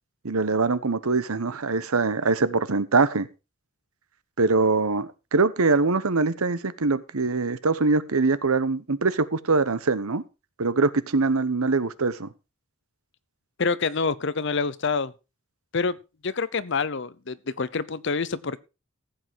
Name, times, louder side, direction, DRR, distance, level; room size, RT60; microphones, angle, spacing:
voice 1, 0.2-3.3 4.4-10.2 10.6-12.3, right 3 dB, 90° right, 1.0 m, -23 dB
voice 2, 13.6-15.1 15.7-16.0 16.2-18.6, left 4 dB, 55° left, 0.7 m, -27 dB
15.0 x 8.1 x 4.6 m
head